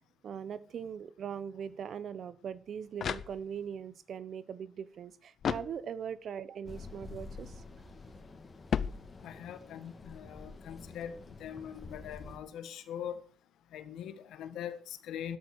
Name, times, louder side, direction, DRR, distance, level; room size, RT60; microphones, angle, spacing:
voice 1, 0.2-7.6, right 7 dB, 60° right, 1.0 m, -41 dB
sound 1, 2.5-3.8 5.4-6.3 8.7-9.6, left 7 dB, 60° left, 0.8 m, -36 dB
sound 2, 6.6-12.4, left 3 dB, 30° left, 3.1 m, -49 dB
voice 2, 9.2-13.2 13.7-15.4, left 9 dB, 80° left, 1.7 m, -42 dB
13.0 x 12.0 x 4.9 m
cardioid pair, 90°, 0 cm